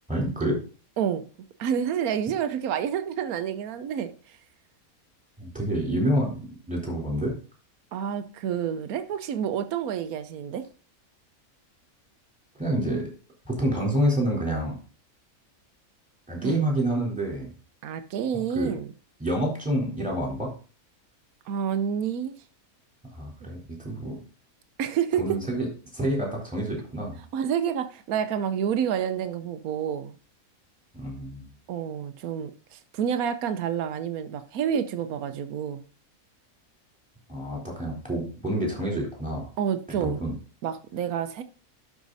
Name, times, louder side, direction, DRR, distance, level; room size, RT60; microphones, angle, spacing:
voice 1, 0.1-0.6 5.4-6.4 6.7-7.3 12.6-13.0 13.5-14.8 16.3-17.5 18.5-18.7 19.2-20.5 23.1-24.2 25.2-25.7 25.9-27.2 30.9-31.5 37.3-39.5 40.0-40.3, right 1 dB, 5° right, 3.9 m, -27 dB
voice 2, 1.6-4.4 7.9-10.6 16.4-16.7 17.8-18.9 21.5-22.3 24.8-25.4 27.3-30.2 31.7-35.8 39.6-40.2 40.6-41.4, right 8 dB, 80° right, 1.2 m, -29 dB
12.0 x 5.2 x 4.1 m
omnidirectional pair, 1.5 m